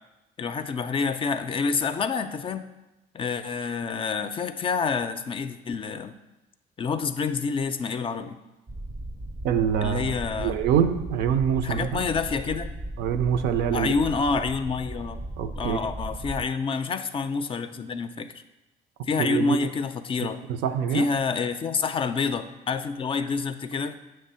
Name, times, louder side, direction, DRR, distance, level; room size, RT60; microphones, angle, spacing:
voice 1, 0.4-2.6 3.1-6.2 6.8-8.4 9.8-10.6 11.6-12.7 13.7-15.2 15.6-18.4 19.1-20.4 20.9-24.0, left 5 dB, 30° left, 10 dB, 0.4 m, -28 dB
sound 1, 8.7-16.4, right 1 dB, 25° right, 0.5 m, -36 dB
voice 2, 9.4-12.1 13.0-13.9 14.3-14.4 15.4-15.8 19.2-19.6 20.5-21.1, right 8 dB, 80° right, 9 dB, 0.5 m, -25 dB
6.6 x 3.2 x 5.5 m, 1.0 s
cardioid pair, 110°, 17 cm